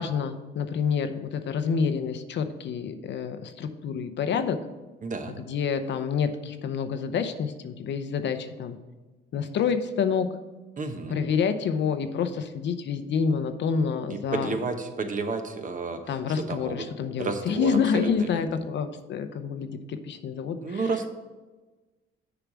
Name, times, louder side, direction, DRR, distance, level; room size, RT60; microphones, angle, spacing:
voice 1, 0.0-4.6 5.4-8.8 9.3-10.3 11.1-14.6 16.1-20.8, left 6 dB, 65° left, 9 dB, 0.7 m, -28 dB
voice 2, 5.0-5.4 10.8-11.2 14.1-16.0 16.3-16.9 17.2-18.4 20.6-21.1, right 4 dB, 40° right, 6 dB, 1.0 m, -31 dB
6.8 x 4.9 x 6.0 m, 1.2 s
cardioid pair, 90°, 20 cm